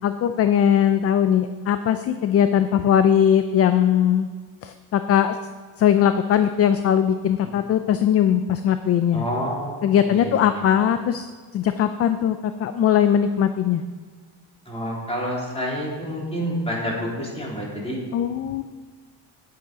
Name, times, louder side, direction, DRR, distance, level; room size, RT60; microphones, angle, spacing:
voice 1, 0.0-4.3 4.6-5.4 5.8-9.2 9.8-11.3 11.5-13.8 18.1-18.6, left 9 dB, 40° left, 10 dB, 0.5 m, -20 dB
voice 2, 9.1-10.6 14.6-18.0, equal, 15° left, -4 dB, 3.4 m, -28 dB
10.0 x 9.6 x 5.0 m, 1.5 s
cardioid pair, 125°, 38 cm